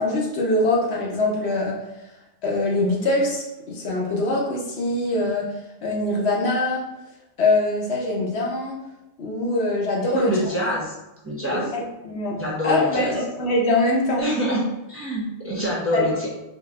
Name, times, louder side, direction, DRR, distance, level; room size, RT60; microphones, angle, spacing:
voice 1, 0.0-1.8 2.4-5.4 5.8-6.8 7.4-8.8 9.2-10.4 11.5-12.4 12.6-14.2 15.9-16.1, left 2 dB, 65° left, -3 dB, 1.0 m, -23 dB
voice 2, 10.1-10.9 11.2-11.6 12.4-13.2 14.2-16.3, equal, 15° right, -6 dB, 0.8 m, -25 dB
4.1 x 2.0 x 3.6 m, 0.94 s
omnidirectional pair, 1.2 m